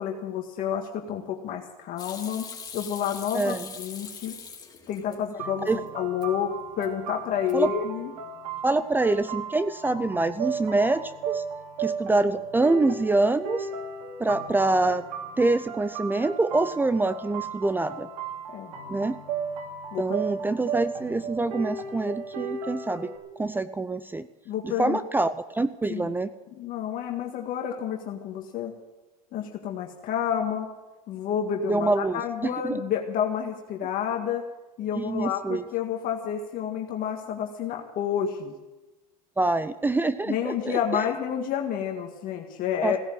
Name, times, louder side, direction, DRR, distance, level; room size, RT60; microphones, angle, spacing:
voice 1, 0.0-2.5 2.7-4.4 4.9-5.7 5.9-8.1 18.5-18.7 19.9-20.0 24.5-25.0 25.9-26.1 26.5-28.7 29.3-30.7 31.1-34.4 34.8-38.5 40.3-43.0, left 9 dB, 45° left, 3 dB, 1.8 m, -29 dB
Hands / Sink (filling or washing), 2.0-5.2 5.5-6.3 6.6-7.1 7.4-7.8, left 6 dB, 20° left, 2.8 m, -42 dB
voice 2, 3.3-3.7 5.1-5.2 5.7-5.8 7.5-7.7 8.6-11.4 11.8-13.7 14.2-15.0 15.4-18.1 18.9-19.2 20.0-24.3 24.6-26.3 31.7-32.8 34.9-35.6 39.4-41.0 42.8-43.0, right 2 dB, 10° right, 13 dB, 0.5 m, -25 dB
sound 1, 5.4-23.2, right 6 dB, 80° right, 2.8 m, -35 dB
16.5 x 10.5 x 7.8 m, 1.1 s
supercardioid pair, 110°, 19 cm